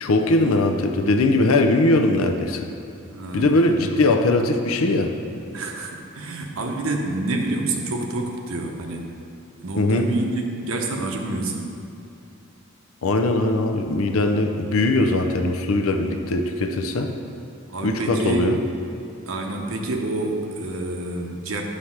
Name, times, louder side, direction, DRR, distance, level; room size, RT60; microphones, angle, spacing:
voice 1, 0.0-2.7 3.3-5.1 9.8-10.1 13.0-17.1 17.8-18.6, left 2 dB, 90° left, 6 dB, 0.6 m, -20 dB
voice 2, 3.1-3.6 5.5-9.1 9.6-11.7 17.0-17.1 17.7-18.5 19.3-21.6, right 2 dB, 80° right, 2 dB, 0.9 m, -28 dB
9.6 x 3.3 x 5.8 m, 2.7 s
head